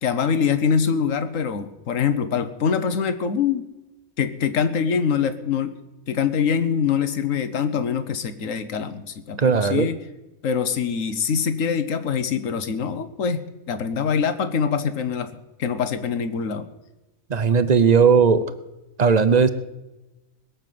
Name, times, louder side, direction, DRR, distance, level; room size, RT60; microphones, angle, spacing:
voice 1, 0.0-3.6 4.2-5.8 6.1-10.0 10.4-15.3 15.6-16.7, left 6 dB, 75° left, 11 dB, 1.4 m, -24 dB
voice 2, 9.4-9.9 17.3-18.4 19.0-19.5, right 5 dB, 40° right, 13 dB, 0.7 m, -17 dB
20.5 x 7.1 x 7.6 m, 1.0 s
omnidirectional pair, 1.4 m